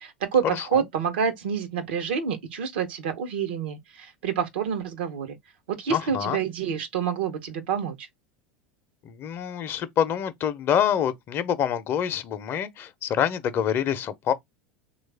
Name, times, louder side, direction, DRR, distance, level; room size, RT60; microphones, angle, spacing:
voice 1, 0.0-5.4 5.7-8.1, right 7 dB, 75° right, 0.8 m, -28 dB
voice 2, 5.9-6.4 9.0-14.3, left 9 dB, 45° left, 0.6 m, -26 dB
3.2 x 2.3 x 3.3 m
hypercardioid pair, 85°, 6 cm